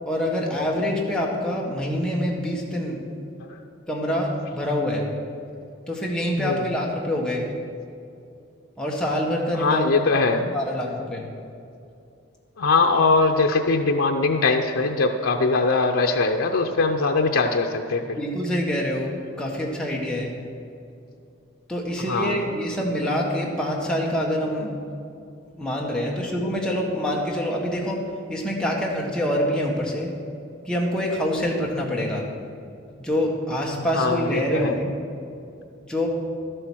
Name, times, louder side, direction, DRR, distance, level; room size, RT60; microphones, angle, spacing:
voice 1, 0.1-3.0 3.9-5.1 5.9-7.5 8.8-11.3 18.2-20.3 21.7-24.8 25.6-30.1 30.6-32.3 33.0-35.0 35.8-36.1, equal, 5° left, -3 dB, 1.5 m, -26 dB
voice 2, 6.4-6.7 9.5-10.5 12.6-18.2 22.1-22.5 33.7-34.7, left 3 dB, 90° left, 3 dB, 0.6 m, -22 dB
12.5 x 7.8 x 6.2 m, 2.6 s
head